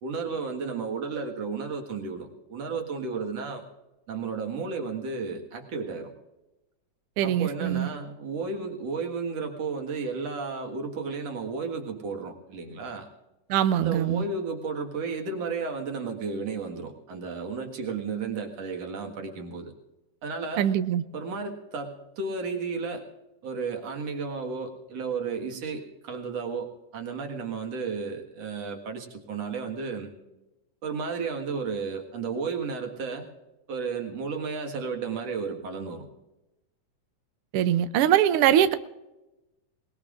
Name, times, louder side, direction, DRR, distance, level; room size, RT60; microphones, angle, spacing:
voice 1, 0.0-3.6 4.1-6.1 7.2-13.1 13.7-19.7 20.2-20.7 21.1-23.1 23.4-26.7 26.9-30.1 30.8-33.3 33.7-36.1, right 4 dB, 60° right, 2 dB, 2.7 m, -33 dB
voice 2, 7.2-7.9 13.5-14.2 20.6-21.0 37.5-38.7, right 11 dB, 90° right, 12 dB, 1.2 m, -22 dB
21.5 x 20.0 x 2.5 m, 1.0 s
omnidirectional pair, 3.4 m